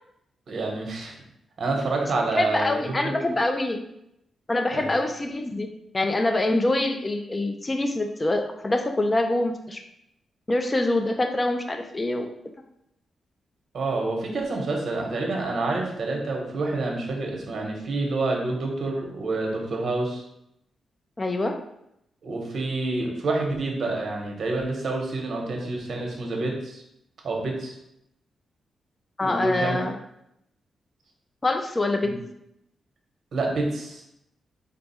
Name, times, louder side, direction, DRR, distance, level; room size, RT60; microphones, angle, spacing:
voice 1, 0.5-1.2 1.6-3.1 4.7-4.9 13.7-20.2 22.2-26.8 27.2-27.8 29.2-29.8 32.0-32.1 33.3-34.0, right 2 dB, 55° right, 1 dB, 0.9 m, -28 dB
voice 2, 2.4-3.8 4.5-5.7 5.9-9.8 10.5-12.3 21.2-21.6 29.2-29.9 31.4-32.1, left 2 dB, 25° left, 5 dB, 0.4 m, -25 dB
3.9 x 2.3 x 4.1 m, 0.79 s
cardioid pair, 105°, 0 cm